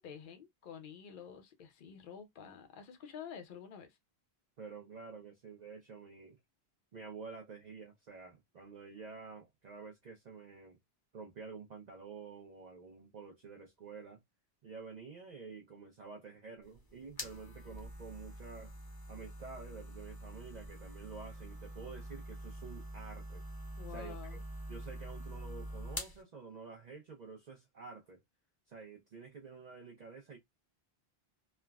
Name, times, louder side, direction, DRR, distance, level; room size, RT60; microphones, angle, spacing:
voice 1, 0.0-4.0 23.8-24.4, left 7 dB, 55° left, 0.8 m, -49 dB
voice 2, 4.6-6.4 6.9-10.8 11.1-14.2 14.6-18.7 19.1-23.4 23.9-24.4 24.7-28.2 28.7-30.4, right 5 dB, 50° right, 0.6 m, -49 dB
sound 1, 16.6-26.2, equal, 25° left, 0.7 m, -46 dB
3.3 x 2.1 x 2.2 m
omnidirectional pair, 1.1 m